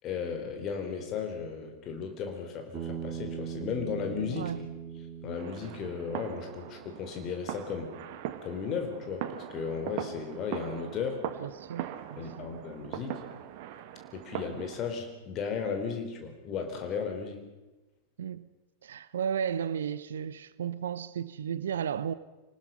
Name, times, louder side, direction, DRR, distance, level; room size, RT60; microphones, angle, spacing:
voice 1, 0.0-4.5 5.2-7.9 8.4-11.3 12.2-13.3 14.1-17.4, left 6 dB, 35° left, 4.1 m, -35 dB
Bass guitar, 2.7-7.1, right 8 dB, 30° right, 3.6 m, -40 dB
sound 1, 5.4-14.8, right 11 dB, 50° right, 1.4 m, -40 dB
voice 2, 11.4-12.5 18.2-18.5 18.8-22.1, right 8 dB, 65° right, 0.8 m, -34 dB
26.5 x 19.5 x 5.7 m
figure-of-eight pair, 90°, 0 cm